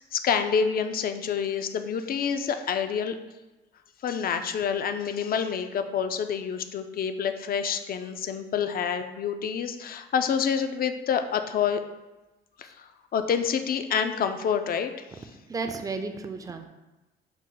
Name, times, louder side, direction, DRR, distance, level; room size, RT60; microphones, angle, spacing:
voice 1, 0.1-3.2 4.0-11.8 12.6-15.1, left 7 dB, 50° left, 8 dB, 0.4 m, -27 dB
voice 2, 15.5-16.7, right 4 dB, 20° right, 5 dB, 0.4 m, -33 dB
4.8 x 2.1 x 3.7 m, 1.1 s
cardioid pair, 90°, 20 cm